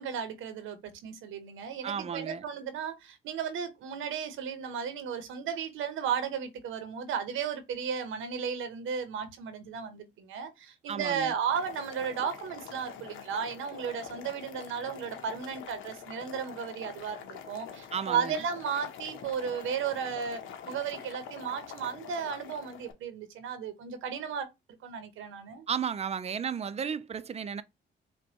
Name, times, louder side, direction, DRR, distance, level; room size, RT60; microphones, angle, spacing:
voice 1, 0.0-20.4 20.7-24.5 24.8-25.7, right 7 dB, 85° right, 0.8 m, -34 dB
voice 2, 1.8-2.4 10.9-11.3 17.9-18.4 25.7-27.6, right 7 dB, 30° right, 0.4 m, -33 dB
Boiling, 11.3-22.9, left 8 dB, 85° left, 0.8 m, -45 dB
5.1 x 2.2 x 2.7 m
cardioid pair, 85°, 20 cm